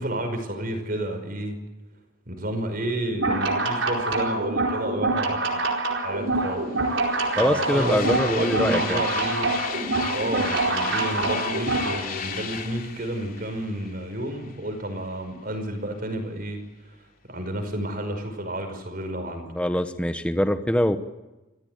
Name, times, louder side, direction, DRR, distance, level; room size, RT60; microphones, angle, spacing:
voice 1, 0.0-1.6 2.3-5.5 6.0-6.7 7.3-9.5 10.1-16.6 17.2-19.5, right 1 dB, 45° right, 6 dB, 5.3 m, -30 dB
sound 1, 3.1-12.0, right 2 dB, 75° right, 4.6 m, -26 dB
sound 2, 5.7-5.8 6.1-14.7, left 6 dB, 45° left, 3.0 m, -35 dB
voice 2, 7.4-9.0 19.6-21.0, equal, 5° left, 9 dB, 1.1 m, -23 dB
26.5 x 17.0 x 9.4 m, 1.0 s
head